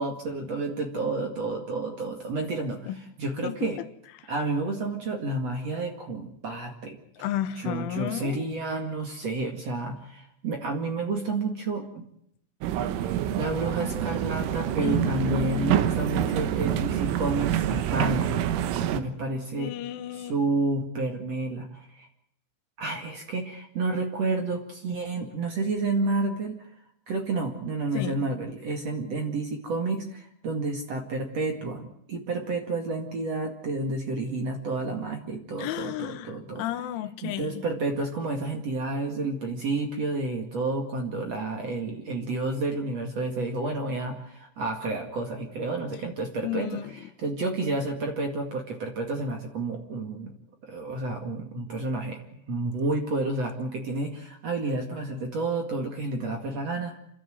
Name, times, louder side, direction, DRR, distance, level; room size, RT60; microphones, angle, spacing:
voice 1, 0.0-2.9 3.2-3.8 4.3-7.0 7.6-12.1 13.0-13.1 13.4-18.3 18.9-19.7 20.3-22.1 22.8-26.7 27.1-36.6 37.2-46.8 47.2-50.3 50.6-52.2 52.5-57.0, right 3 dB, 45° right, 3 dB, 2.4 m, -30 dB
voice 2, 3.4-3.9 4.2-4.3 7.2-8.5 14.8-15.8 19.6-20.4 27.9-28.2 35.6-37.7 46.4-47.0, left 12 dB, 80° left, 12 dB, 3.5 m, -33 dB
sound 1, 12.6-19.0, right 11 dB, 90° right, 3.8 m, -27 dB
28.5 x 13.0 x 9.3 m, 0.73 s
omnidirectional pair, 5.6 m